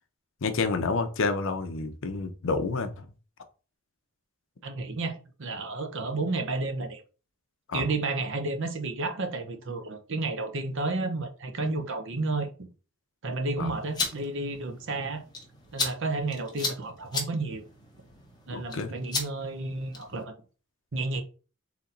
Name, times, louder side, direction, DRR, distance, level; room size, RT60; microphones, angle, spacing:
voice 1, 0.4-3.1 7.7-7.8 13.6-13.7 18.5-19.0, left 4 dB, 60° left, 0.6 m, -29 dB
voice 2, 4.6-7.0 7.7-12.5 13.2-15.2 15.7-17.6 18.5-20.4 20.9-21.2, right 3 dB, 60° right, 0.8 m, -31 dB
sound 1, 13.7-20.2, left 3 dB, 20° left, 1.0 m, -36 dB
4.1 x 2.9 x 3.8 m
head